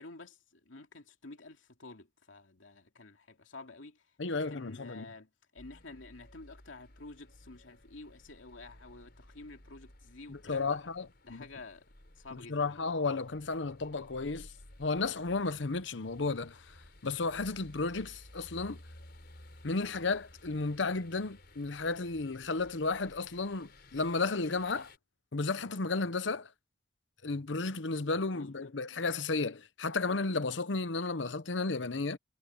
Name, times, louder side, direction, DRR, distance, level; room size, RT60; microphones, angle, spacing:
voice 1, 0.0-4.0 4.5-10.8 11.2-11.8 12.2-12.8 24.8-24.9 28.3-28.7, left 3 dB, 85° left, 2.6 m, -50 dB
voice 2, 4.2-5.1 10.3-11.4 12.3-14.5 14.8-18.8 19.6-24.9 25.3-26.5 27.2-32.2, left 3 dB, 70° left, 0.9 m, -33 dB
sound 1, 5.6-25.0, left 1 dB, 55° left, 5.2 m, -56 dB
head